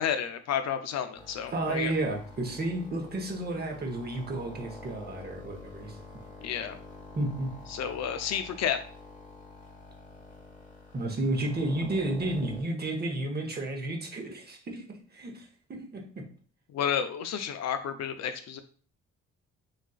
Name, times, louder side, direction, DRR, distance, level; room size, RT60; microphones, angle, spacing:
voice 1, 0.0-1.9 6.4-6.8 7.7-8.8 16.7-18.6, left 8 dB, 60° left, 9 dB, 0.4 m, -31 dB
sound 1, 1.2-12.6, left 3 dB, 25° left, 1.3 m, -48 dB
voice 2, 1.5-6.0 7.2-7.6 10.9-16.3, right 2 dB, 30° right, 2 dB, 0.8 m, -32 dB
4.1 x 2.3 x 2.3 m, 0.43 s
cardioid pair, 90°, 30 cm